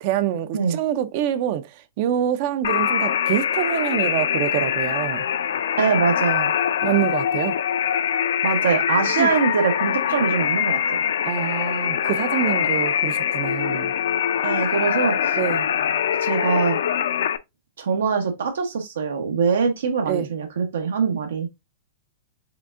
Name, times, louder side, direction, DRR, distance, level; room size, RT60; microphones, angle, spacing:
voice 1, 0.0-1.7 2.0-5.2 6.8-7.5 9.2-9.3 11.2-13.9 15.4-15.7 20.1-20.3, right 10 dB, 45° right, 0.4 m, -25 dB
sound 1, 2.6-17.4, left 9 dB, 75° left, 0.4 m, -23 dB
voice 2, 5.8-6.5 8.4-10.8 14.4-15.4 16.2-16.8 17.8-21.5, right 5 dB, 90° right, 0.9 m, -23 dB
5.0 x 3.4 x 2.4 m
hypercardioid pair, 160°, 0 cm